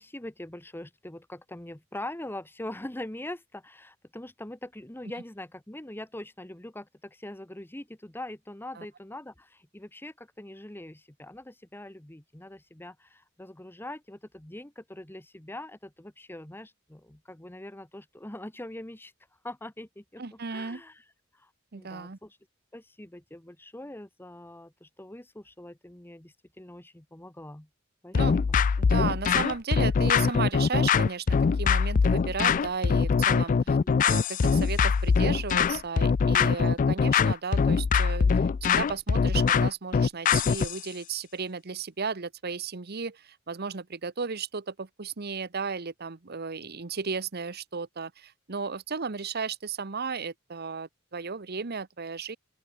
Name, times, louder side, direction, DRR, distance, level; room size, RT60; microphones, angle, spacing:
voice 1, 0.0-19.1 19.4-21.0 21.3-22.4 22.7-27.7 28.0-28.6 33.7-33.9, left 1 dB, 10° left, 1.2 m, -43 dB
voice 2, 20.2-20.8 21.7-22.2 28.1-28.3 28.8-31.3 31.5-33.8 34.0-52.4, right 5 dB, 50° right, 1.0 m, -34 dB
sound 1, 28.1-40.8, left 5 dB, 40° left, 0.3 m, -23 dB
open air
head